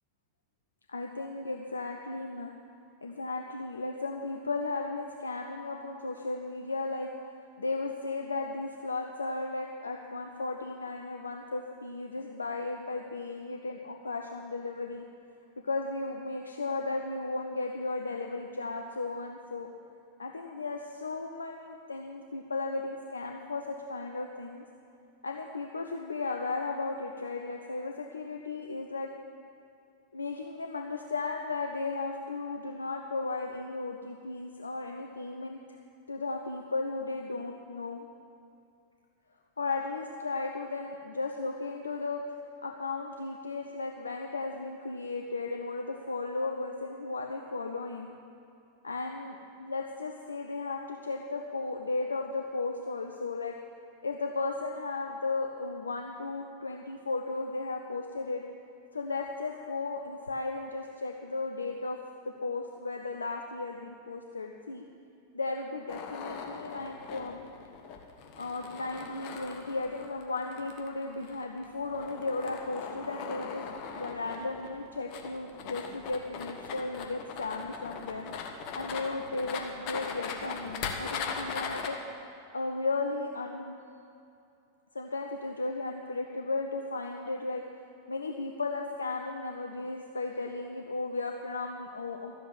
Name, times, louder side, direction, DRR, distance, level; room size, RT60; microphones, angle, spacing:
voice 1, 0.9-2.5 3.0-7.1 7.6-15.0 15.6-19.7 20.2-24.6 25.2-29.1 30.1-35.6 36.1-38.1 39.6-48.1 48.8-49.3 49.6-53.5 54.0-58.4 58.9-62.0 62.4-64.8 65.3-67.4 68.4-78.3 78.7-82.0 82.5-83.8 84.9-87.6 88.1-92.3, left 3 dB, 75° left, 2 dB, 0.7 m, -35 dB
sound 1, 65.9-81.9, left 6 dB, 40° left, 1.5 m, -40 dB
13.0 x 8.1 x 8.7 m, 2.6 s
figure-of-eight pair, 90°, 0 cm